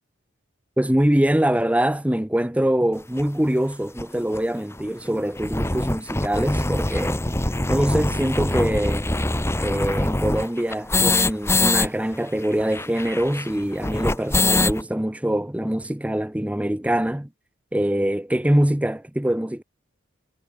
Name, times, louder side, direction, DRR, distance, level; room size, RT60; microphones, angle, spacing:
voice 1, 0.8-7.2 7.7-9.1 9.6-17.3 17.7-19.6, right 1 dB, 5° right, 0.7 m, -23 dB
sound 1, 3.2-3.3 4.0-4.1 4.3-4.4 4.7-4.8 5.2-11.9 12.1-12.2 12.4-14.8, left 2 dB, 15° left, 1.2 m, -23 dB
head